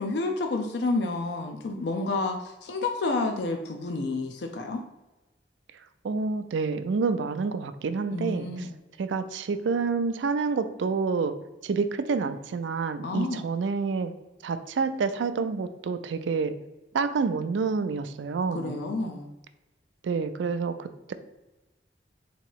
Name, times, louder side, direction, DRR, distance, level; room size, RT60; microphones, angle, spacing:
voice 1, 0.0-4.8 8.1-8.7 13.0-13.5 18.5-19.3, left 3 dB, 65° left, 4 dB, 0.4 m, -30 dB
voice 2, 6.0-8.7 9.0-11.3 11.6-14.1 14.4-16.6 16.9-18.8 20.0-21.1, right 4 dB, 90° right, 10 dB, 0.4 m, -28 dB
3.9 x 3.0 x 4.5 m, 1.1 s
head